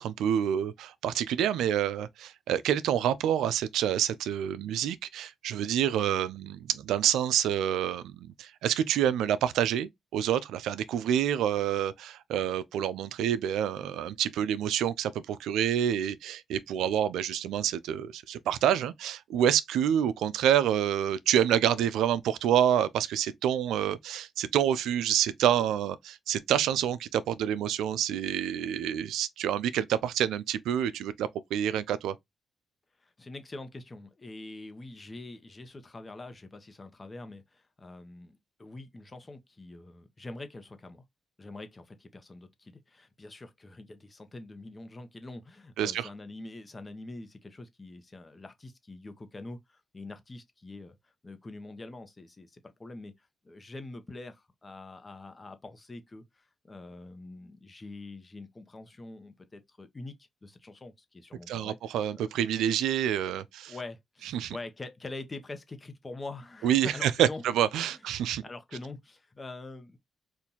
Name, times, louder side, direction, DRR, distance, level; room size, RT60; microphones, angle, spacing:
voice 1, 0.0-32.1 45.8-46.1 61.5-63.7 64.3-64.6 66.6-68.4, right 10 dB, 90° right, 0.3 m, -27 dB
voice 2, 33.0-41.0 41.4-62.3 63.7-67.4 67.9-68.0 68.4-70.0, left 2 dB, 30° left, 0.9 m, -45 dB
3.9 x 2.5 x 2.8 m
cardioid pair, 65°, 0 cm